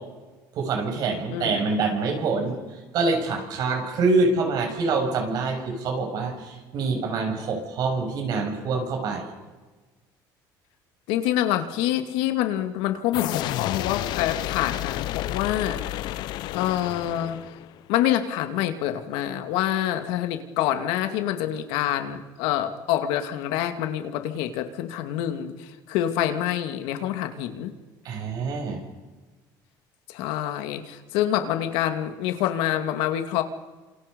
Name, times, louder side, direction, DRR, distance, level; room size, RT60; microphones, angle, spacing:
voice 1, 0.5-9.3 28.0-28.8, right 3 dB, 55° right, 3 dB, 7.2 m, -26 dB
voice 2, 1.3-1.7 11.1-16.2 16.5-17.4 17.9-27.7 30.1-33.4, left 11 dB, 90° left, 7 dB, 2.5 m, -26 dB
sound 1, 13.1-17.8, left 15 dB, 60° left, 0.7 m, -31 dB
29.0 x 27.5 x 5.5 m, 1.2 s
cardioid pair, 145°, 8 cm